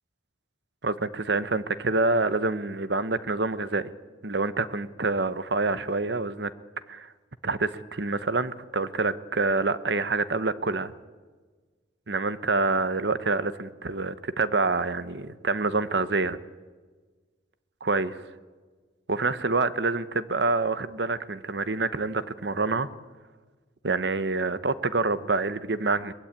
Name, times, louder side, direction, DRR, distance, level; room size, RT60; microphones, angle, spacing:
voice 1, 0.8-3.9 4.2-6.5 6.9-7.1 7.4-10.9 12.1-16.4 17.8-18.2 19.1-22.9 23.8-26.1, right 3 dB, 65° right, 1.0 m, -27 dB
22.5 x 21.5 x 8.9 m
head